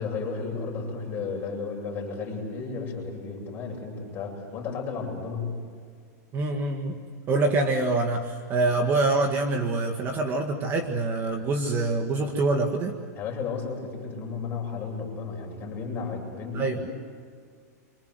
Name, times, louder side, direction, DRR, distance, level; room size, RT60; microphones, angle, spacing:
voice 1, 0.0-5.5 13.2-16.9, left 4 dB, 20° left, -1 dB, 7.9 m, -33 dB
voice 2, 6.3-7.0 7.3-13.0 16.5-16.9, right 3 dB, 25° right, 4 dB, 1.8 m, -25 dB
29.0 x 25.5 x 7.9 m, 2.1 s
supercardioid pair, 160°, 9 cm